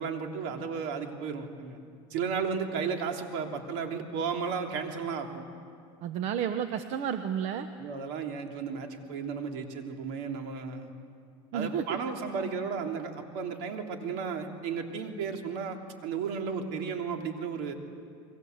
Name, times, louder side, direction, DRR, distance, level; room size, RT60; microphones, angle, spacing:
voice 1, 0.0-1.8 2.1-5.4 7.8-10.9 11.5-17.7, right 6 dB, 65° right, 3 dB, 3.1 m, -34 dB
voice 2, 6.0-7.7 11.5-12.0, right 8 dB, 50° right, 9 dB, 1.1 m, -31 dB
30.0 x 22.5 x 8.0 m, 2.3 s
supercardioid pair, 135°, 14 cm